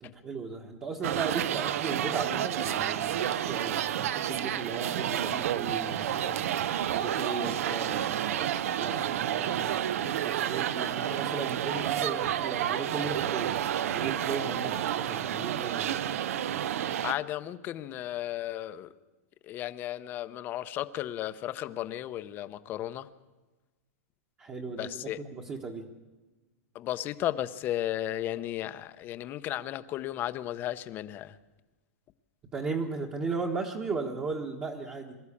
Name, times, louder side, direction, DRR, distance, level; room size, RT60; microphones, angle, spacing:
voice 1, 0.0-6.4 6.9-8.5 8.8-13.6 13.8-16.0 24.4-25.9 32.5-35.2, right 4 dB, 20° right, 0 dB, 1.3 m, -36 dB
sound 1, 1.0-17.1, right 10 dB, 65° right, 0.8 m, -30 dB
voice 2, 17.0-18.9 19.4-23.1 24.8-25.2 26.7-31.3, left 13 dB, 25° left, 13 dB, 0.7 m, -34 dB
23.0 x 13.0 x 8.6 m, 1.2 s
supercardioid pair, 160°, 8 cm